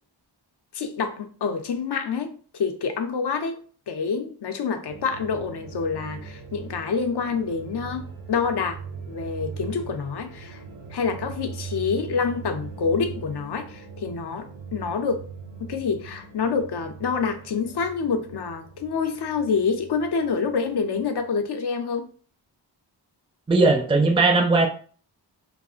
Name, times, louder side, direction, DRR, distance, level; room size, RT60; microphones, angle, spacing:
voice 1, 0.7-3.6 3.9-8.8 9.1-10.6 10.9-15.2 15.6-22.1, left 5 dB, 65° left, 7 dB, 0.6 m, -27 dB
sound 1, 4.9-21.2, right 5 dB, 75° right, 0.6 m, -40 dB
voice 2, 23.5-24.7, right 3 dB, 10° right, 3 dB, 0.4 m, -18 dB
2.3 x 2.0 x 3.7 m, 0.42 s
wide cardioid pair, 70°, 44 cm